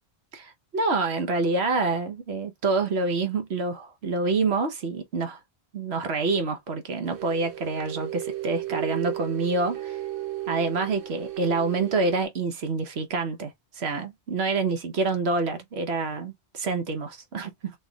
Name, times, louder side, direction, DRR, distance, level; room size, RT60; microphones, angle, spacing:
voice 1, 0.3-5.4 5.7-10.0 10.5-17.8, right 3 dB, 90° right, 1.2 m, -27 dB
sound 1, 7.0-12.3, right 14 dB, 65° right, 0.8 m, -34 dB
4.0 x 3.4 x 2.3 m
omnidirectional pair, 1.1 m